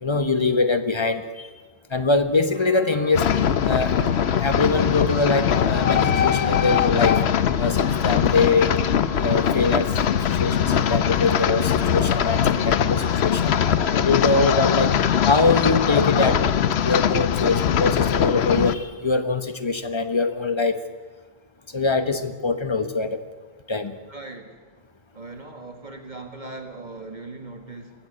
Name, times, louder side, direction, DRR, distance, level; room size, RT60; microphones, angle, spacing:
voice 1, 0.0-1.5 1.9-3.3 3.6-4.0 4.4-7.2 7.6-8.7 9.2-13.5 13.9-14.9 15.2-16.4 16.8-20.8 21.7-23.2 23.7-24.0, left 3 dB, 25° left, 10 dB, 1.1 m, -23 dB
sound 1, 2.4-18.9, right 1 dB, 90° right, 3.7 m, -43 dB
sound 2, 3.1-18.8, left 8 dB, 80° left, 1.0 m, -21 dB
voice 2, 24.1-24.6 25.1-27.9, right 2 dB, 45° right, 5 dB, 1.8 m, -39 dB
22.5 x 15.5 x 8.2 m, 1.4 s
omnidirectional pair, 1.1 m